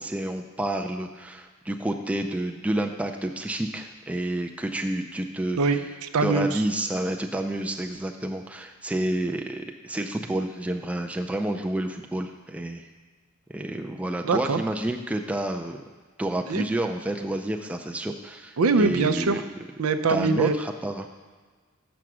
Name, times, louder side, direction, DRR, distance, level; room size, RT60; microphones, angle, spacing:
voice 1, 0.0-5.8 6.2-12.9 13.5-15.8 16.2-19.4 20.1-21.1, right 1 dB, 5° right, 3 dB, 0.4 m, -29 dB
voice 2, 5.6-6.6 14.2-14.6 16.5-16.6 18.6-19.4 19.8-20.6, right 4 dB, 80° right, 9 dB, 0.5 m, -23 dB
6.8 x 6.1 x 6.0 m, 1.5 s
head